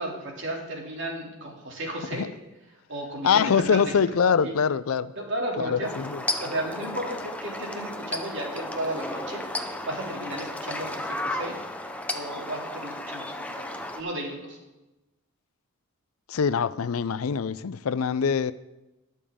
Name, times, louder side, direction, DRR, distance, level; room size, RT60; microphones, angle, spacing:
voice 1, 0.0-2.2 2.9-3.9 4.4-4.6 5.2-5.9 6.4-11.5 12.1-14.6, right 1 dB, 55° right, 2.7 m, -34 dB
voice 2, 3.2-5.1 5.6-6.2 16.3-18.5, left 6 dB, 70° left, 0.4 m, -24 dB
sound 1, 5.8-14.0, left 1 dB, 5° left, 0.6 m, -34 dB
20.5 x 6.9 x 3.7 m
head